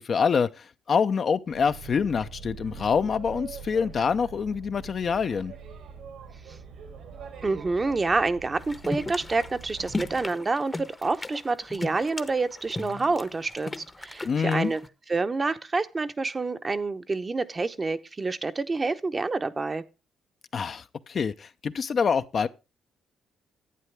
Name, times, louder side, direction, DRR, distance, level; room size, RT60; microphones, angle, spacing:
voice 1, 0.0-5.5 14.2-14.7 20.5-22.5, left 6 dB, 50° left, 0.6 m, -26 dB
Boat Water vehicle, 1.5-10.3, right 6 dB, 80° right, 2.5 m, -44 dB
voice 2, 7.4-14.8 15.1-19.8, right 3 dB, 30° right, 0.8 m, -28 dB
sound 1, 8.6-14.9, left 2 dB, 20° left, 0.9 m, -36 dB
11.0 x 8.9 x 3.4 m
cardioid pair, 90°, 0 cm